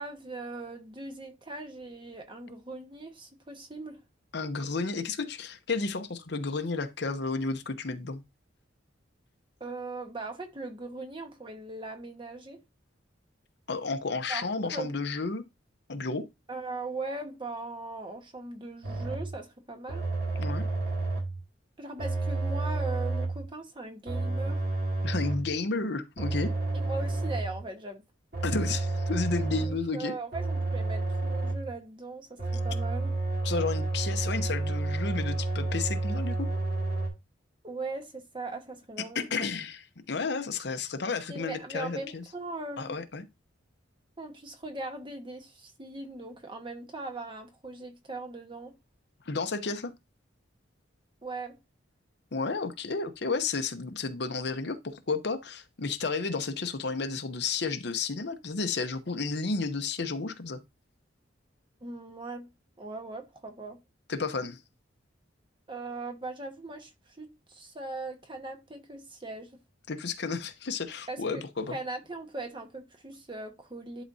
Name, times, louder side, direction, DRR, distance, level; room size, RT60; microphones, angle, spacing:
voice 1, 0.0-4.0 9.6-12.6 14.3-14.4 14.7-14.9 16.5-20.1 21.8-24.6 26.7-28.0 29.5-33.1 37.6-39.6 41.3-43.0 44.2-48.7 51.2-51.6 61.8-62.5 62.8-63.8 65.7-69.5 71.1-71.4 71.7-74.0, right 2 dB, 25° right, 1.3 m, -39 dB
voice 2, 4.3-8.2 13.7-15.4 15.9-16.3 20.4-20.7 25.0-26.5 28.4-30.1 33.4-36.5 39.1-42.2 42.8-43.3 49.3-49.9 52.3-60.6 64.1-64.6 69.9-71.8, left 4 dB, 60° left, 0.8 m, -32 dB
sound 1, 18.8-19.4 19.9-21.4 22.0-23.5 24.1-25.5 26.2-27.6 28.3-29.9 30.3-31.7 32.4-37.1, right 2 dB, 55° right, 2.5 m, -30 dB
11.0 x 4.0 x 2.7 m
head